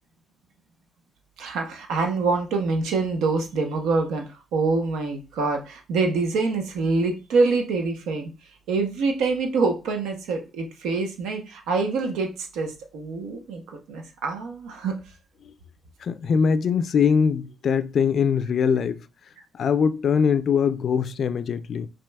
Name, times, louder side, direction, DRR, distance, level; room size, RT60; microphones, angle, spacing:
voice 1, 1.4-8.3 8.7-13.6 13.9-14.9, right 3 dB, 90° right, 0.8 m, -25 dB
voice 2, 16.0-19.0 19.5-21.9, left 6 dB, 55° left, 0.3 m, -22 dB
5.1 x 3.0 x 2.3 m
cardioid pair, 90°, 0 cm